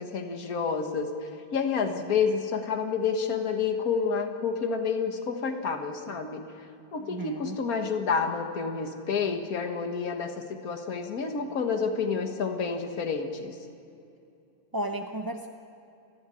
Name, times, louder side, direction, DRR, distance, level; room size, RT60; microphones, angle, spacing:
voice 1, 0.0-6.4 6.9-13.5, left 5 dB, 60° left, 5 dB, 2.0 m, -29 dB
voice 2, 7.0-7.6 14.7-15.5, right 1 dB, 25° right, 4 dB, 0.5 m, -34 dB
29.5 x 12.0 x 9.9 m, 2.7 s
omnidirectional pair, 1.7 m